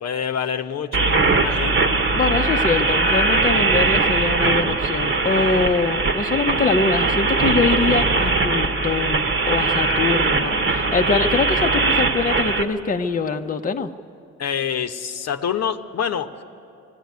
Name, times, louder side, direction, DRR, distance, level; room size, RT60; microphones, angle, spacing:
voice 1, 0.0-1.9 10.1-10.8 14.4-16.3, left 8 dB, 60° left, 6 dB, 0.9 m, -27 dB
sound 1, 0.9-12.6, right 3 dB, 40° right, 1.3 m, -20 dB
voice 2, 2.1-13.9, left 4 dB, 25° left, 4 dB, 0.8 m, -23 dB
19.5 x 16.0 x 9.5 m, 2.8 s
cardioid pair, 90°, 30 cm